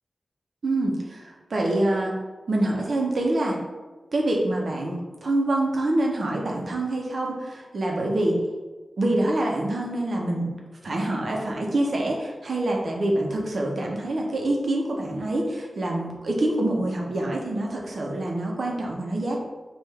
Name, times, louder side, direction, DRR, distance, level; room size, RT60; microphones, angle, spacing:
voice 1, 0.6-2.2 2.5-3.6 4.1-8.4 9.0-10.5 10.8-19.4, right 1 dB, 70° right, -1 dB, 0.9 m, -26 dB
5.5 x 2.6 x 3.4 m, 1.2 s
wide cardioid pair, 75°, 0 cm